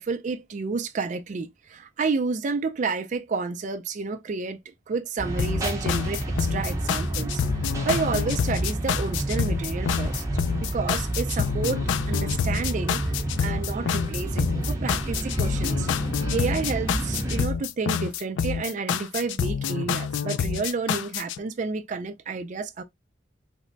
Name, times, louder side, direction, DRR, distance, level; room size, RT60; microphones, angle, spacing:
voice 1, 0.0-4.6 4.9-10.2 10.6-15.9 16.3-22.8, right 4 dB, 40° right, 0.4 m, -30 dB
sound 1, 5.2-17.4, right 1 dB, 15° right, 0.7 m, -29 dB
sound 2, 5.4-21.4, left 7 dB, 80° left, 0.3 m, -28 dB
3.3 x 2.1 x 3.9 m
head